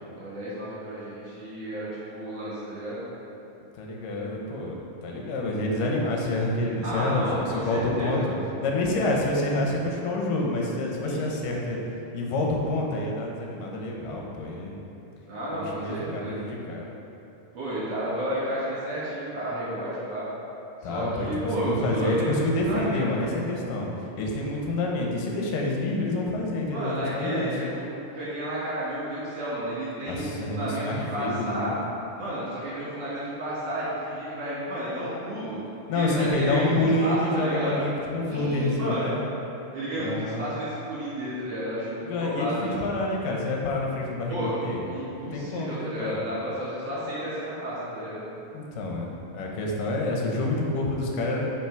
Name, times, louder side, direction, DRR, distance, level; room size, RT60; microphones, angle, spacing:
voice 1, 0.2-3.0 6.8-8.5 11.0-11.3 15.3-16.5 17.5-20.3 20.8-23.0 26.7-31.7 32.2-35.6 35.9-36.8 37.0-37.8 38.3-39.2 39.7-42.7 44.3-44.6 44.9-48.2, right 1 dB, 55° right, -10 dB, 2.6 m, -32 dB
voice 2, 3.8-7.3 7.5-8.2 8.6-11.8 12.1-14.8 15.7-17.0 20.8-23.9 24.2-27.5 30.1-31.7 35.9-39.2 40.0-40.5 42.0-44.8 45.2-46.2 48.5-51.4, left 2 dB, 80° left, -1 dB, 2.5 m, -28 dB
5.9 x 5.2 x 4.5 m, 2.9 s
omnidirectional pair, 3.9 m